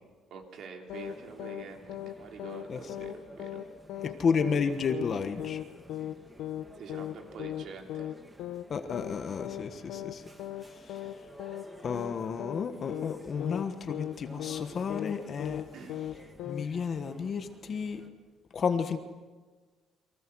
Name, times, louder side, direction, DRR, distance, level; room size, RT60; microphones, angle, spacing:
voice 1, 0.3-3.6 6.8-8.1 15.7-16.0, right 5 dB, 50° right, 3 dB, 3.3 m, -46 dB
sound 1, 0.9-1.1 1.4-1.6 1.9-2.1 2.4-2.6 2.9-3.1 3.4-3.6 3.9-4.1 4.4-4.6 4.9-5.1 5.4-5.6 5.9-6.1 6.4-6.6 6.9-7.1 7.4-7.6 7.9-8.1 8.4-8.6 8.9-9.1 9.4-9.6 9.9-10.1 10.4-10.6 10.9-11.1 11.4-11.6 11.9-12.1 12.4-12.6 12.9-13.1 13.4-13.6 13.9-14.1 14.4-14.6 14.9-15.1 15.4-15.6 15.9-16.1 16.4-16.6, left 12 dB, 85° left, 1.1 m, -37 dB
sound 2, 0.9-18.1, right 1 dB, 10° right, 1.8 m, -52 dB
voice 2, 4.0-5.6 8.7-10.2 10.7-11.0 11.8-15.6 16.4-18.0 18.5-19.0, left 6 dB, 30° left, 8 dB, 1.3 m, -32 dB
30.0 x 23.5 x 6.3 m, 1.4 s
cardioid pair, 180°, 0 cm